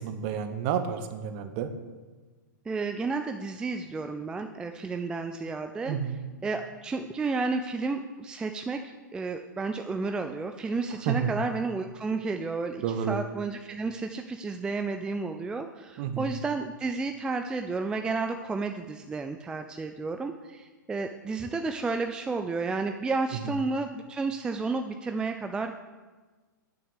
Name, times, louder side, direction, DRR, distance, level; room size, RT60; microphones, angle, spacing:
voice 1, 0.0-1.7 5.9-6.2 11.1-11.3 12.8-13.2 16.0-16.3, right 8 dB, 40° right, 9 dB, 0.8 m, -30 dB
voice 2, 2.7-6.0 6.4-25.8, right 4 dB, 10° right, 6 dB, 0.3 m, -32 dB
8.5 x 6.5 x 6.5 m, 1.3 s
figure-of-eight pair, 105°, 11 cm